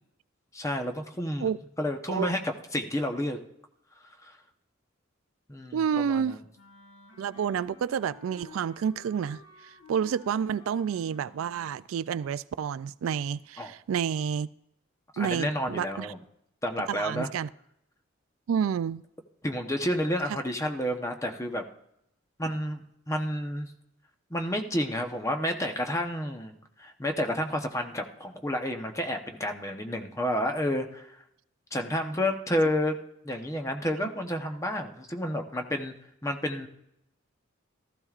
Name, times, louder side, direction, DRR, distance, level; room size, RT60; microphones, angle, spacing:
voice 1, 0.5-1.5 1.8-3.4 4.2-4.4 5.5-6.4 13.6-13.7 15.1-16.2 16.6-17.3 19.4-21.6 22.4-23.7 24.3-31.1 31.7-33.0 33.2-35.9 36.2-36.7, equal, 15° left, 0.9 m, -30 dB
voice 2, 5.7-6.4 7.2-14.5 15.2-16.1 16.9-17.5 18.5-19.0, right 7 dB, 85° right, 0.3 m, -29 dB
Wind instrument woodwind instrument, 6.5-11.8, left 3 dB, 65° left, 1.6 m, -53 dB
15.0 x 14.0 x 2.4 m
head